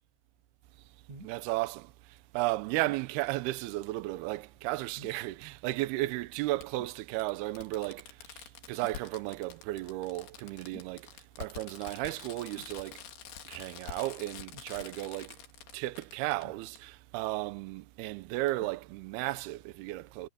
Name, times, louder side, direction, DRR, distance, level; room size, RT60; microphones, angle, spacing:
sound 1, 1.1-1.4 2.8-3.1 4.9-5.3 6.8-7.0 8.8-9.1 10.7-11.0 12.5-12.8 14.5-14.7 16.4-17.0 18.5-18.8 19.6-19.7, right 2 dB, 45° right, 6.2 m, -51 dB
voice 1, 1.2-1.9 2.3-8.0 8.3-8.4 8.7-11.1 11.4-13.0 13.5-15.4 15.7-20.3, right 18 dB, 80° right, 2.6 m, -34 dB
Fireworks, 3.3-3.4 4.9-5.0 6.6-6.7 7.2-7.3 7.6-16.4 16.8-16.9, left 9 dB, 70° left, 3.9 m, -47 dB
omnidirectional pair, 4.8 m